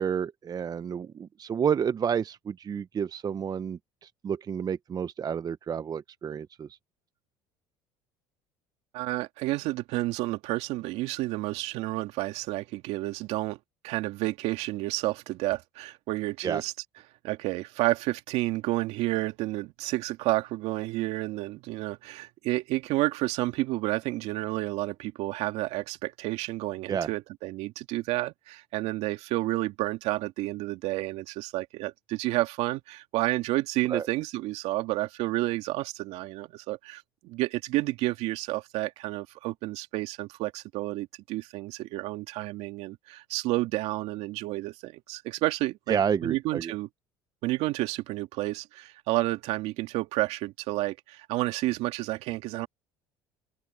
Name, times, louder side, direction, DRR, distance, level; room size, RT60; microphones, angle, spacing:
voice 1, 0.0-6.8 16.4-16.6 26.9-27.1 33.9-34.0 45.9-46.7, right 7 dB, 35° right, 0.7 m, -30 dB
voice 2, 8.9-13.6 13.8-16.7 17.2-46.9 47.4-52.7, right 18 dB, 70° right, 2.5 m, -30 dB
open air
hypercardioid pair, 75°, 11 cm